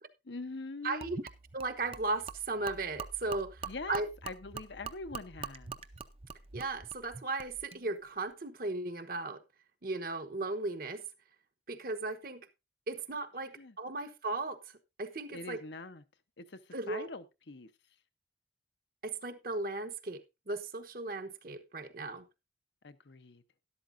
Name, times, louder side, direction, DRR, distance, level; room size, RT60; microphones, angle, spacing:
voice 1, 0.2-1.1 3.6-5.8 13.5-13.8 15.3-16.0 16.4-17.7 22.8-23.4, left 3 dB, 80° left, 0.9 m, -44 dB
voice 2, 0.8-1.2 1.5-4.1 6.5-9.4 9.8-11.0 11.7-12.5 12.9-14.6 15.0-15.6 16.7-17.1 19.0-22.3, right 3 dB, 50° right, 1.0 m, -36 dB
Gurgling / Liquid, 1.0-7.8, right 5 dB, 35° right, 0.6 m, -45 dB
12.5 x 11.5 x 2.6 m
head